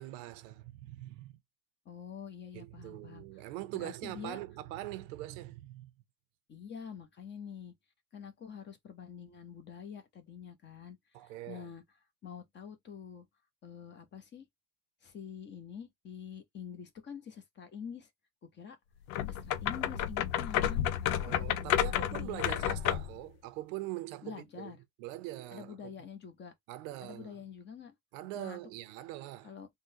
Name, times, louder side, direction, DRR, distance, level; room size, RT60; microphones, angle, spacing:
voice 1, 0.0-1.4 2.5-5.9 11.1-11.7 21.1-24.7 25.0-25.9 26.7-27.4 28.1-29.5, right 15 dB, 90° right, 0.7 m, -42 dB
voice 2, 1.8-3.2 3.7-4.4 6.5-7.7 8.1-11.8 12.2-13.3 13.6-14.5 15.0-18.1 18.5-18.8 19.3-22.4 24.2-24.8 25.5-26.5 27.0-27.9 28.3-28.6 29.4-29.7, left 7 dB, 25° left, 0.8 m, -46 dB
sound 1, 19.1-23.2, left 11 dB, 85° left, 0.6 m, -31 dB
3.8 x 2.2 x 2.7 m
cardioid pair, 135°, 40 cm